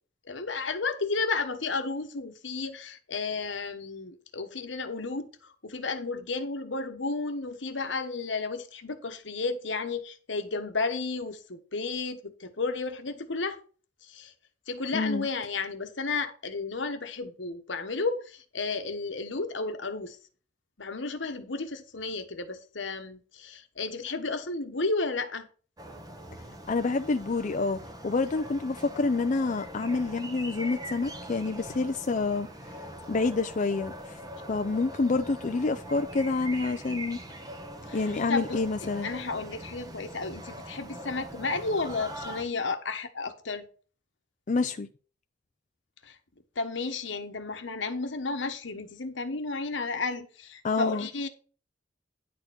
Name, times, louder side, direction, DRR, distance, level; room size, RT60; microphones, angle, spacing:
voice 1, 0.2-13.6 14.0-14.3 14.7-20.2 20.8-25.5 37.9-43.6 46.0-46.2 46.5-51.3, left 3 dB, 75° left, 1.2 m, -33 dB
voice 2, 14.9-15.3 26.7-32.5 33.1-33.9 34.5-37.2 37.9-39.1 44.5-44.9 50.6-51.1, left 3 dB, 40° left, 0.5 m, -28 dB
sound 1, 25.8-42.4, equal, 20° right, 1.2 m, -42 dB
10.5 x 4.4 x 6.0 m
head